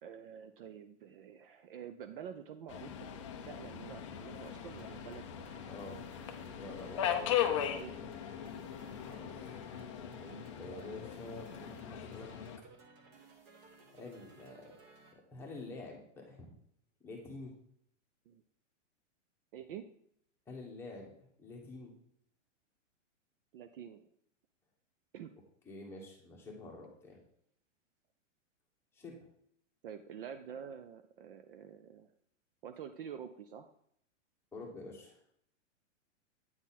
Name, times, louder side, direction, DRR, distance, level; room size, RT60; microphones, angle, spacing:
voice 1, 0.0-5.5 5.8-5.9 7.6-8.1 8.9-9.1 18.3-18.4 19.5-19.9 23.5-24.1 25.1-25.3 29.8-32.1 32.6-33.7, right 8 dB, 50° right, 9 dB, 0.4 m, -48 dB
Subway metro underground, 2.7-12.6, left 10 dB, 25° left, 0.4 m, -39 dB
sound 1, 4.5-15.1, right 3 dB, 30° right, 1.0 m, -59 dB
voice 2, 5.7-6.0 6.6-7.2 9.0-12.3 13.9-14.7 15.1-16.5 17.0-17.5 20.5-21.1 21.4-21.9 25.6-27.2 28.9-29.2 34.5-35.2, left 2 dB, 5° left, -2 dB, 1.2 m, -48 dB
8.6 x 3.9 x 4.1 m, 0.69 s
hypercardioid pair, 155°, 37 cm